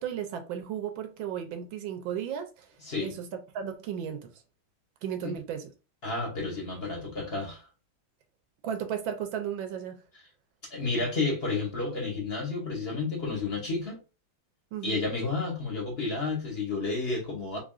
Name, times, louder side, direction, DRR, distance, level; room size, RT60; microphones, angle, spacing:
voice 1, 0.0-2.7 3.0-4.3 5.0-5.7 8.6-10.0 14.7-15.0, right 8 dB, 75° right, 1.3 m, -34 dB
voice 2, 6.0-7.6 10.7-14.0 14.8-17.6, left 3 dB, 35° left, 1.1 m, -31 dB
3.7 x 3.6 x 2.4 m
omnidirectional pair, 2.3 m